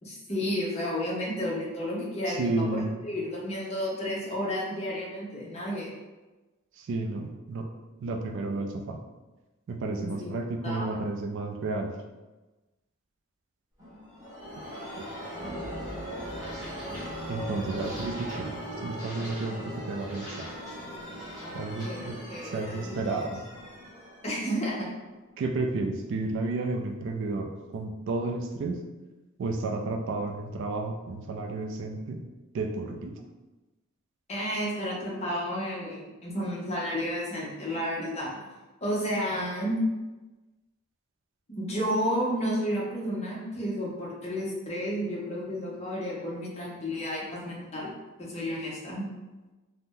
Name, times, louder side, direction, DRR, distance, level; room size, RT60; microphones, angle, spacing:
voice 1, 0.0-5.9 10.0-10.3 10.6-11.0 21.4-23.2 24.2-24.9 34.3-38.3 38.8-39.8 41.5-47.9 48.2-49.1, equal, 30° left, -5 dB, 0.7 m, -32 dB
voice 2, 2.3-2.9 6.8-7.7 8.0-9.0 9.7-11.9 17.3-20.3 21.5-22.2 22.5-23.4 25.4-28.8 29.4-32.2 32.5-33.2, right 3 dB, 60° right, 3 dB, 0.3 m, -32 dB
sound 1, 13.8-25.3, equal, 20° right, 1.0 m, -39 dB
2.7 x 2.0 x 3.6 m, 1.2 s
head